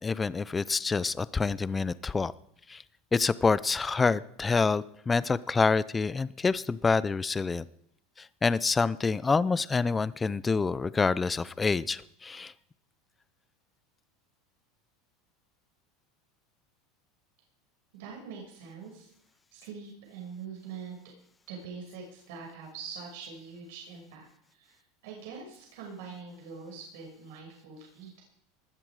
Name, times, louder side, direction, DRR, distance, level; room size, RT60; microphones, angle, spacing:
voice 1, 0.0-2.3 2.7-2.8 3.1-7.6 8.2-12.5, left 4 dB, 15° left, 17 dB, 0.6 m, -27 dB
voice 2, 17.9-19.1 19.5-21.0 21.5-28.2, right 5 dB, 75° right, 0 dB, 6.3 m, -44 dB
19.5 x 13.5 x 4.9 m, 0.73 s
supercardioid pair, 150°, 0 cm